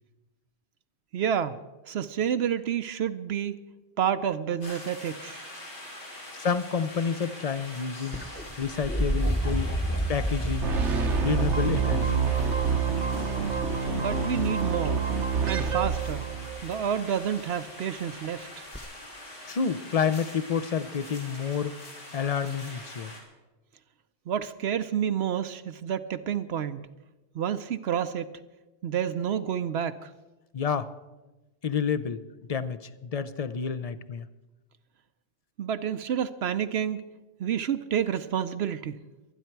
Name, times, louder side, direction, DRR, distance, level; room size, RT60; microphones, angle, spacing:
voice 1, 1.1-1.6 1.9-3.6 4.0-5.4 13.5-13.6 13.9-15.0 15.5-16.3 16.6-18.5 24.3-26.9 27.3-28.3 28.8-30.1 35.6-37.0 37.4-39.0, right 9 dB, 70° right, 11 dB, 0.9 m, -29 dB
sound 1, 4.6-23.2, left 1 dB, 80° left, 3.5 m, -44 dB
voice 2, 6.4-8.2 8.6-9.7 10.1-10.8 11.2-12.3 19.5-21.8 22.1-23.1 30.5-30.9 31.6-32.2 32.5-34.3, left 6 dB, 40° left, 12 dB, 0.6 m, -29 dB
sound 2, 8.1-14.1 15.7-16.2 18.7-18.8, equal, 10° left, 1.0 m, -31 dB
sound 3, 10.6-16.8, right 5 dB, 85° right, 1.3 m, -27 dB
23.5 x 9.9 x 4.6 m, 1.1 s
omnidirectional pair, 1.2 m